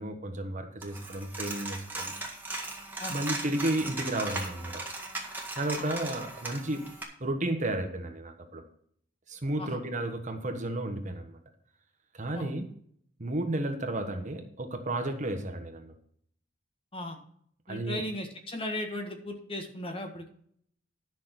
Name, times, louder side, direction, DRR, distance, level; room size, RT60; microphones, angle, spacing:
voice 1, 0.0-2.1 3.1-4.8 5.6-6.8 7.2-8.6 9.3-11.4 12.1-12.7 13.2-15.9 17.7-18.0, right 1 dB, 40° right, 6 dB, 1.4 m, -32 dB
Coin (dropping), 0.8-7.0, right 2 dB, 10° right, 1.8 m, -38 dB
voice 2, 17.7-20.3, left 1 dB, 30° left, 4 dB, 1.6 m, -37 dB
11.0 x 6.2 x 6.0 m, 0.64 s
head